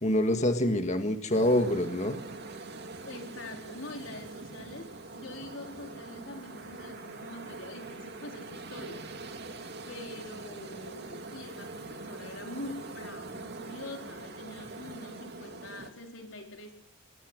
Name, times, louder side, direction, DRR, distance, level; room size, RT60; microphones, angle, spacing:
voice 1, 0.0-2.2, left 1 dB, 35° left, 7 dB, 1.7 m, -26 dB
sound 1, 1.3-15.9, right 3 dB, 55° right, 2.3 m, -43 dB
voice 2, 3.0-9.4 9.9-16.7, left 2 dB, 75° left, 3 dB, 4.4 m, -44 dB
22.0 x 20.0 x 6.4 m, 0.76 s
head